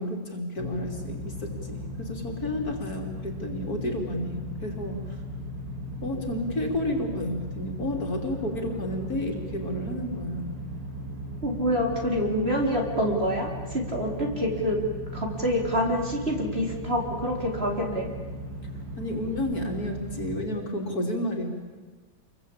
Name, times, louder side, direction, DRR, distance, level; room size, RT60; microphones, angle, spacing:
voice 1, 0.0-5.2 6.0-10.5 19.0-21.5, left 1 dB, 50° left, 2 dB, 3.6 m, -31 dB
sound 1, 0.6-20.3, equal, 65° right, 4.9 m, -37 dB
voice 2, 11.4-14.8 15.1-18.1, equal, 30° right, 0 dB, 4.3 m, -27 dB
28.0 x 22.5 x 8.7 m, 1.4 s
omnidirectional pair, 2.1 m